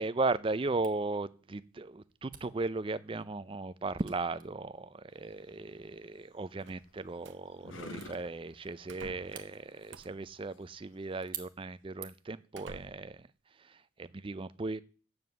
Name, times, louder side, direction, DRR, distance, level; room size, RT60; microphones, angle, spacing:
voice 1, 0.0-13.2 13.6-14.8, right 3 dB, 25° right, 0.4 m, -36 dB
Camera, 0.8-12.4, right 11 dB, 45° right, 1.1 m, -53 dB
sound 1, 5.1-11.2, left 2 dB, 75° left, 1.1 m, -52 dB
sound 2, 6.6-7.4 8.0-8.3 8.9-9.4 9.9-10.3 11.2-11.3 11.9-12.0 12.5-13.2, right 4 dB, 65° right, 0.7 m, -51 dB
9.5 x 7.3 x 6.9 m
head